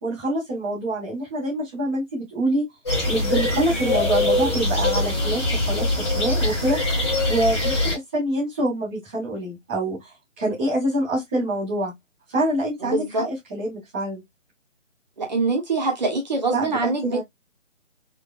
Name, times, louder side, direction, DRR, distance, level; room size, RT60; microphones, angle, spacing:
voice 1, 0.0-2.7 3.1-6.8 7.3-11.9 12.3-14.2 16.5-17.2, right 1 dB, 10° right, 0.9 m, -26 dB
sound 1, 2.8-7.9, left 2 dB, 20° left, 1.1 m, -23 dB
voice 2, 12.8-13.2 15.2-17.2, right 3 dB, 35° right, 1.1 m, -24 dB
3.8 x 2.2 x 2.4 m
figure-of-eight pair, 155°, 38 cm